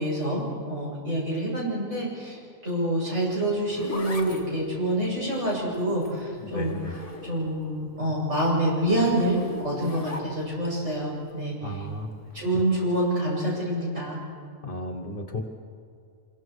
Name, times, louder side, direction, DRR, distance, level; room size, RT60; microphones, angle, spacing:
voice 1, 0.0-6.8 7.2-11.9 12.3-14.2, right 1 dB, 60° right, -5 dB, 8.0 m, -27 dB
Zipper (clothing), 3.2-7.7 8.0-10.7 12.3-12.6, left 2 dB, 25° left, 2.3 m, -39 dB
voice 2, 6.4-6.9 11.6-12.3 14.6-15.4, left 1 dB, 40° left, 4 dB, 1.6 m, -34 dB
26.5 x 23.5 x 4.8 m, 2.3 s
omnidirectional pair, 1.4 m